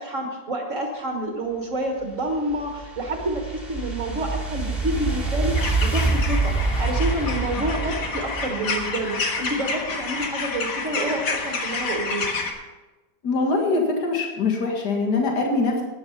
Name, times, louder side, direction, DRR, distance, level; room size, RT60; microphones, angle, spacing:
voice 1, 0.0-12.3, right 1 dB, 50° right, 2 dB, 1.7 m, -28 dB
sound 1, 2.0-9.3, right 3 dB, ahead, 3.6 m, -26 dB
sound 2, 5.5-12.5, left 4 dB, 85° left, 2.2 m, -29 dB
voice 2, 13.2-15.8, left 3 dB, 70° left, 1 dB, 2.4 m, -23 dB
13.0 x 10.0 x 5.7 m, 1.2 s
omnidirectional pair, 1.8 m